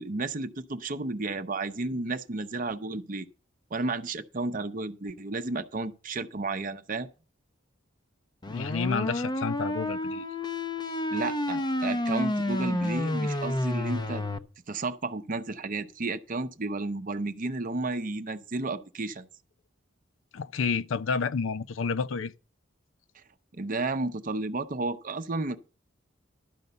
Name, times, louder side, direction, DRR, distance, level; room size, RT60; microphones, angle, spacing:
voice 1, 0.0-3.3 3.7-7.1 11.1-14.2 14.7-19.3 23.5-25.6, right 3 dB, 45° right, 0.7 m, -32 dB
sound 1, 8.4-14.4, left 1 dB, 20° left, 0.7 m, -30 dB
voice 2, 8.5-10.3 20.3-22.3, left 5 dB, 75° left, 0.5 m, -30 dB
12.0 x 5.3 x 6.8 m
head